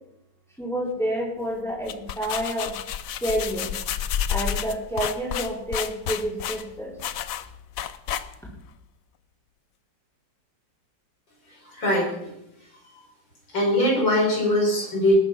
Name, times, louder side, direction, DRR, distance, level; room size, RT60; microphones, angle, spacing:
voice 1, 0.6-2.7 3.2-3.7 4.3-6.9, equal, ahead, -4 dB, 4.3 m, -29 dB
sound 1, 1.7-8.6, left 9 dB, 65° left, 0.9 m, -30 dB
voice 2, 11.6-12.3 13.5-15.2, left 1 dB, 85° left, -2 dB, 6.1 m, -22 dB
20.0 x 8.8 x 6.0 m, 0.83 s
omnidirectional pair, 2.0 m